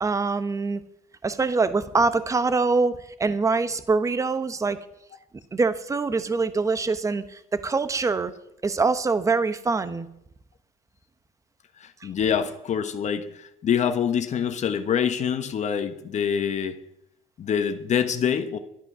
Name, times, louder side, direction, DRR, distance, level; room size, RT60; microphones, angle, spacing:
voice 1, 0.0-0.8 1.2-4.8 5.5-8.3 8.6-10.1 12.0-12.1, right 4 dB, 20° right, 13 dB, 1.0 m, -24 dB
voice 2, 11.8-16.8 17.4-18.6, left 8 dB, 50° left, 8 dB, 1.2 m, -25 dB
12.0 x 11.0 x 6.1 m, 0.81 s
cardioid pair, 95°, 16 cm